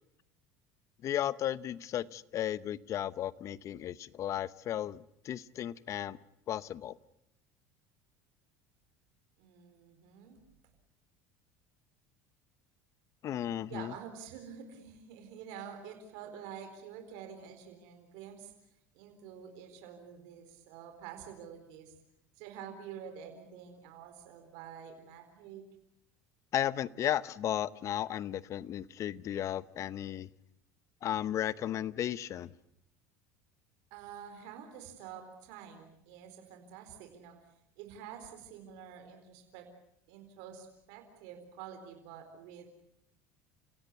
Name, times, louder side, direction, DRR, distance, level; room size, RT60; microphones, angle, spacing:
voice 1, 1.0-6.2 6.5-7.0 13.2-13.9 26.5-30.3 31.0-32.5, left 11 dB, 45° left, 17 dB, 0.9 m, -34 dB
voice 2, 9.4-10.4 13.7-18.5 18.9-21.9 22.4-25.7 33.9-37.4 37.8-39.7 40.1-42.7, right 8 dB, 75° right, 6 dB, 4.2 m, -48 dB
30.0 x 16.5 x 8.3 m, 0.81 s
supercardioid pair, 100°, 7 cm